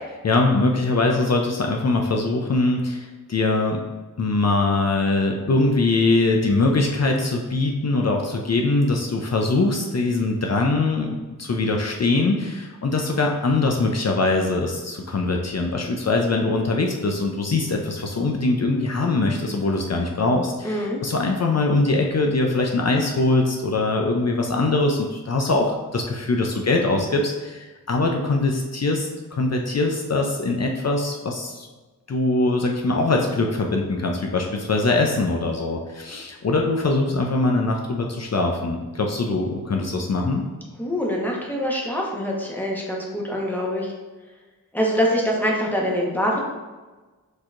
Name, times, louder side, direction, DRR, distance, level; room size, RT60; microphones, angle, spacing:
voice 1, 0.2-3.8 4.2-11.1 11.4-31.7 32.1-40.4, left 2 dB, 45° left, 1 dB, 0.5 m, -22 dB
voice 2, 20.6-21.0 40.8-43.9 44.7-46.4, equal, 5° left, -2 dB, 1.1 m, -24 dB
6.4 x 2.9 x 2.5 m, 1.2 s
cardioid pair, 60°, 36 cm